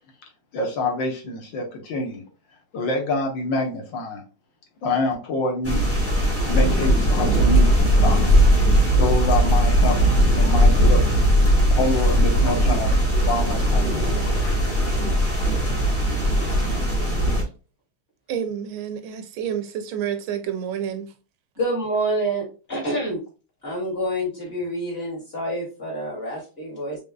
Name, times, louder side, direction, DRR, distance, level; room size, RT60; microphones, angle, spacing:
voice 1, 0.5-2.2 2.7-4.2 4.8-5.9 6.5-8.3 9.0-14.6, left 2 dB, 65° left, 1.6 m, -27 dB
sound 1, 5.6-17.4, equal, 10° left, 0.9 m, -19 dB
voice 2, 18.3-21.1, right 9 dB, 75° right, 1.4 m, -29 dB
voice 3, 21.6-23.2 23.6-27.0, right 1 dB, 25° left, 2.4 m, -27 dB
5.3 x 3.5 x 2.3 m
omnidirectional pair, 2.4 m